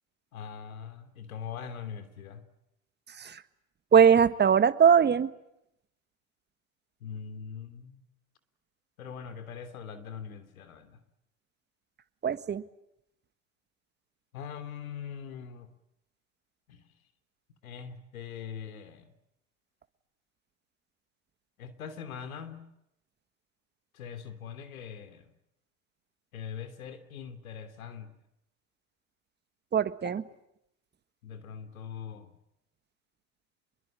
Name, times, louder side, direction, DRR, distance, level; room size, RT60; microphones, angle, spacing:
voice 1, 0.3-2.4 7.0-8.0 9.0-11.0 14.3-15.7 16.7-16.8 17.6-19.0 21.6-22.7 23.9-25.3 26.3-28.1 30.3-30.4 31.2-32.3, left 7 dB, 85° left, 10 dB, 3.1 m, -42 dB
voice 2, 3.9-5.3 12.2-12.6 29.7-30.2, right 7 dB, 25° right, 12 dB, 1.6 m, -21 dB
27.0 x 22.0 x 8.9 m, 0.80 s
hypercardioid pair, 95°, 41 cm